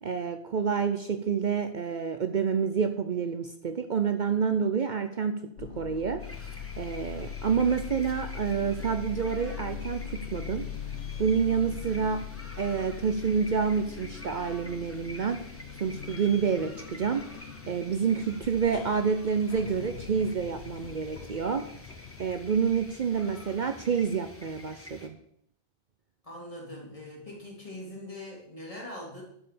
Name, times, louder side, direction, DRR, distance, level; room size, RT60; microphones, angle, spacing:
voice 1, 0.0-6.2 6.8-10.7 11.2-12.2 12.6-15.4 15.8-17.2 17.7-21.7 22.2-25.2, right 6 dB, 50° right, 8 dB, 0.8 m, -28 dB
sound 1, 5.6-23.6, left 9 dB, 90° left, 1.0 m, -41 dB
sound 2, 6.2-25.1, left 1 dB, 15° left, 1.3 m, -48 dB
voice 2, 26.2-29.2, left 1 dB, 35° left, -3 dB, 3.3 m, -42 dB
11.5 x 5.6 x 6.8 m, 0.72 s
omnidirectional pair, 1.1 m